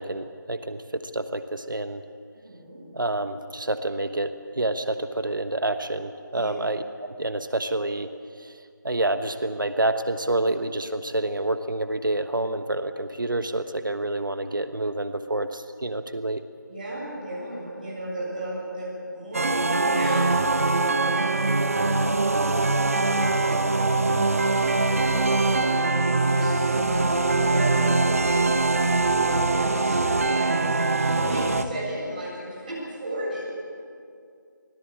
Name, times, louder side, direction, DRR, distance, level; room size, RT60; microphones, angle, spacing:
voice 1, 0.0-2.0 2.9-8.1 8.4-8.5 8.8-16.4, right 2 dB, 75° right, 9 dB, 1.3 m, -28 dB
voice 2, 2.4-2.8 6.3-6.5 16.7-20.4 20.8-24.0 24.6-33.4, right 1 dB, 25° right, -5 dB, 7.4 m, -35 dB
sound 1, 19.3-31.6, right 3 dB, 45° right, 1.1 m, -22 dB
25.0 x 17.5 x 8.7 m, 2.4 s
figure-of-eight pair, 170°, 11 cm